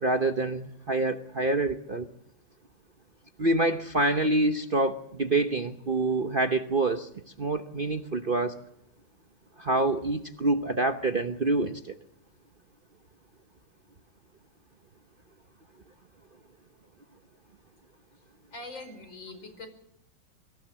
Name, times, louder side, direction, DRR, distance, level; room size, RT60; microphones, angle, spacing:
voice 1, 0.0-2.1 3.4-7.1 7.4-8.6 9.6-11.9, right 2 dB, 40° right, 8 dB, 0.8 m, -26 dB
voice 2, 18.5-19.7, left 2 dB, 85° left, 7 dB, 5.9 m, -42 dB
25.0 x 15.5 x 7.3 m, 0.80 s
omnidirectional pair, 2.0 m